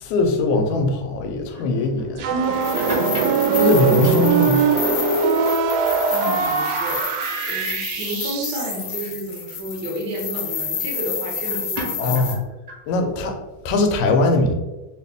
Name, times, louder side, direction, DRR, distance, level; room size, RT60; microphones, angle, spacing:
voice 1, 0.0-2.3 3.5-4.6 12.0-12.4 12.9-13.4 13.7-14.5, left 2 dB, 90° left, 4 dB, 2.0 m, -20 dB
sound 1, 1.5-4.5 4.9-5.2 5.5-8.2 8.7-9.1 10.1-10.3 10.7-12.9, equal, 40° right, 1.1 m, -37 dB
sound 2, 2.2-8.9, right 5 dB, 80° right, 1.6 m, -21 dB
sound 3, 2.5-12.3, left 6 dB, 70° left, 1.2 m, -30 dB
voice 2, 6.1-7.1 7.5-12.3, right 1 dB, 55° right, -3 dB, 1.2 m, -31 dB
4.4 x 2.4 x 3.3 m, 1.1 s
omnidirectional pair, 3.3 m